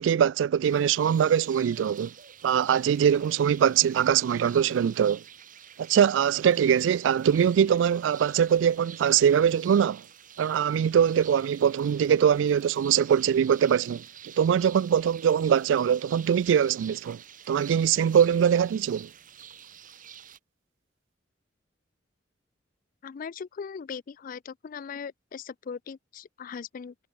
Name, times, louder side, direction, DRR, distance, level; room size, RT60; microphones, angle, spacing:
voice 1, 0.0-2.1 2.4-5.2 5.8-10.0 10.4-17.2 17.5-19.1, right 8 dB, 80° right, 0.3 m, -22 dB
sound 1, 0.6-20.4, right 9 dB, 45° right, 1.9 m, -48 dB
voice 2, 23.0-26.9, left 6 dB, 45° left, 0.4 m, -39 dB
head